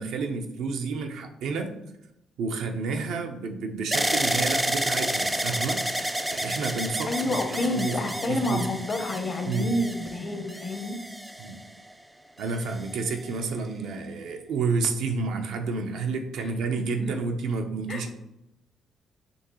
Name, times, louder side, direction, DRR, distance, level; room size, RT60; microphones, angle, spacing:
voice 1, 0.0-1.8 2.4-8.7 9.4-9.8 11.4-11.6 12.4-18.1, right 4 dB, 85° right, 4 dB, 0.6 m, -30 dB
sound 1, 3.9-11.9 12.6-13.3, right 1 dB, 5° right, 0.4 m, -30 dB
voice 2, 7.1-11.0 17.0-17.1 17.9-18.0, left 1 dB, 45° left, 6 dB, 0.7 m, -28 dB
6.2 x 2.7 x 3.0 m, 0.86 s
cardioid pair, 90°, 0 cm